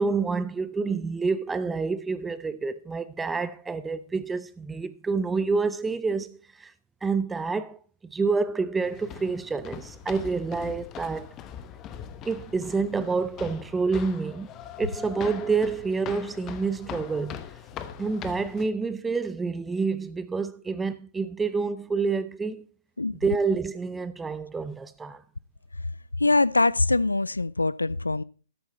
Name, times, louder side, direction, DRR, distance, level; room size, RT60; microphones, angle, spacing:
voice 1, 0.0-6.7 7.0-7.8 8.1-11.3 12.2-14.5 14.8-17.4 18.0-22.6 23.2-25.2, right 4 dB, 10° right, 0.7 m, -28 dB
sound 1, 8.8-18.6, left 9 dB, 25° left, 0.9 m, -41 dB
voice 2, 26.2-28.2, left 2 dB, 90° left, 0.4 m, -23 dB
13.0 x 8.0 x 4.3 m
figure-of-eight pair, 125°, 0 cm